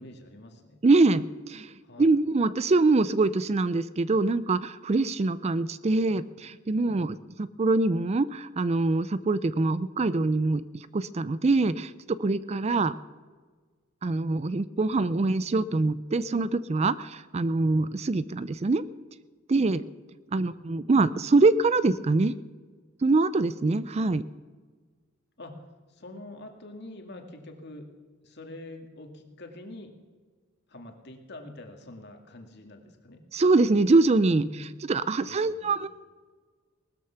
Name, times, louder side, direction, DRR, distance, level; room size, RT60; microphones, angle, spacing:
voice 1, 0.0-0.8 1.8-2.1 6.9-7.3 20.3-20.5 25.4-25.6 25.9-27.9 28.2-29.9 30.7-33.2 34.4-34.8 35.3-35.8, left 1 dB, 60° left, 4 dB, 2.2 m, -45 dB
voice 2, 0.8-1.7 2.0-10.6 10.9-12.9 14.0-18.9 19.5-19.8 20.3-22.3 23.0-24.2 33.3-35.9, right 3 dB, 30° right, 16 dB, 0.4 m, -24 dB
19.0 x 13.0 x 5.8 m, 1.5 s
head